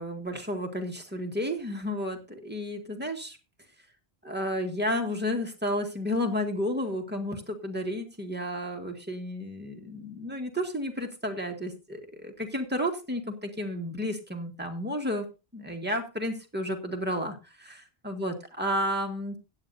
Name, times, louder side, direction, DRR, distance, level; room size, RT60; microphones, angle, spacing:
voice 1, 0.0-3.4 4.2-15.3 15.5-19.4, equal, 10° right, 2 dB, 1.7 m, -32 dB
16.0 x 9.6 x 2.7 m, 0.29 s
omnidirectional pair, 1.1 m